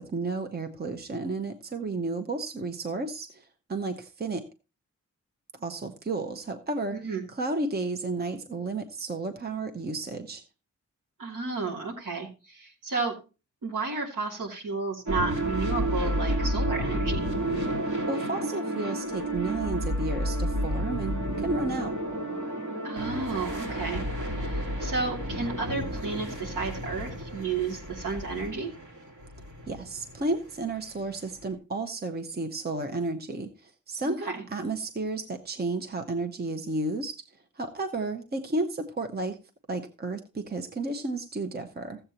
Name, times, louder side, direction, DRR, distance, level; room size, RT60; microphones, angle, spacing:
voice 1, 0.0-4.5 5.6-7.0 7.3-10.4 18.1-21.9 29.7-37.3 37.6-39.4 39.7-42.0, right 2 dB, 30° right, 6 dB, 0.8 m, -32 dB
voice 2, 6.9-7.2 11.2-13.1 13.6-17.3 22.8-24.0 24.5-28.7 34.0-34.4, right 4 dB, 90° right, -2 dB, 2.8 m, -32 dB
sound 1, 15.1-31.5, equal, 75° right, 3.2 m, -31 dB
14.5 x 7.9 x 2.9 m, 0.30 s
wide cardioid pair, 155°, 31 cm